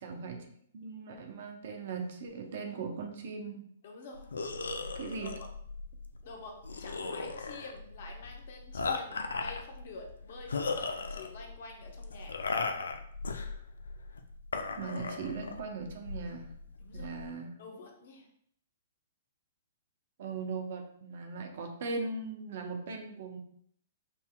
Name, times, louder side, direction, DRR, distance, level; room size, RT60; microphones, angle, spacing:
voice 1, 0.0-0.5 0.7-3.6 4.9-5.3 14.8-16.5 16.9-17.5 20.2-23.4, right 4 dB, 60° right, 4 dB, 0.7 m, -39 dB
voice 2, 3.8-4.3 5.2-5.3 6.2-12.4 16.8-17.1 17.6-18.3, left 3 dB, 55° left, 2 dB, 0.9 m, -48 dB
sound 1, 4.1-17.3, left 4 dB, 80° left, 0.4 m, -37 dB
5.4 x 2.8 x 2.3 m, 0.65 s
figure-of-eight pair, 120°, 0 cm